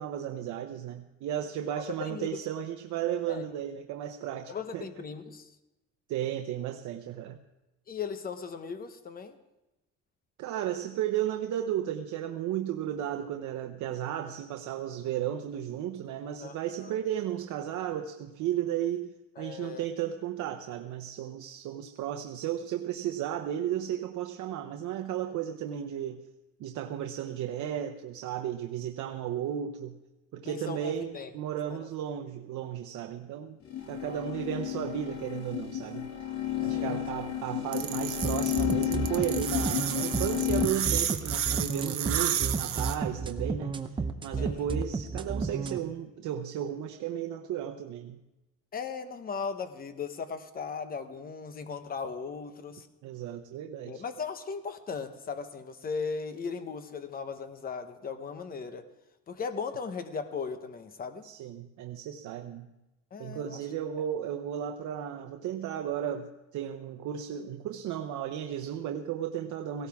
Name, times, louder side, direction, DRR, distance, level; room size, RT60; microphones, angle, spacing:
voice 1, 0.0-4.9 6.1-7.4 10.4-26.2 26.6-30.0 30.3-33.6 33.9-36.1 36.6-43.8 44.2-48.2 53.0-54.0 61.2-62.7 63.2-69.9, right 10 dB, 80° right, 5 dB, 0.8 m, -34 dB
voice 2, 1.7-2.3 3.3-3.5 4.5-5.5 7.9-9.4 16.4-16.9 19.4-19.8 30.4-31.3 31.7-31.9 34.0-34.3 36.6-37.0 44.4-44.6 48.7-52.9 53.9-58.8 59.3-61.3 63.1-63.6, left 5 dB, 30° left, 9 dB, 0.9 m, -37 dB
sound 1, 33.6-40.7, left 11 dB, 65° left, 2.3 m, -32 dB
sound 2, 37.7-42.9, right 10 dB, 50° right, 1.1 m, -31 dB
sound 3, 38.2-45.8, right 4 dB, 15° right, 0.7 m, -32 dB
17.5 x 16.5 x 3.5 m, 0.99 s
cardioid pair, 170°, 29 cm